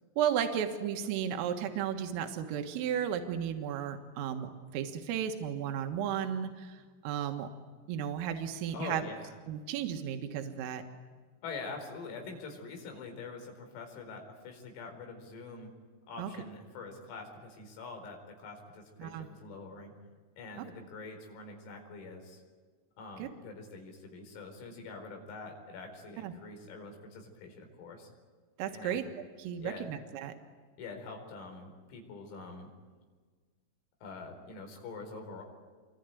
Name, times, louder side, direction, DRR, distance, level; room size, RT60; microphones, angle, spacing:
voice 1, 0.2-7.5 7.9-9.0 9.5-10.8 16.2-16.3 19.0-19.3 23.2-23.3 26.2-26.3 28.6-30.3, right 9 dB, 80° right, 5 dB, 4.1 m, -34 dB
voice 2, 8.7-9.4 11.4-15.7 16.1-19.9 20.4-22.4 23.0-28.1 28.7-29.1 29.6-30.0 30.8-32.7 34.0-35.4, left 3 dB, 90° left, 3 dB, 7.2 m, -45 dB
27.5 x 23.0 x 9.3 m, 1.5 s
omnidirectional pair, 5.9 m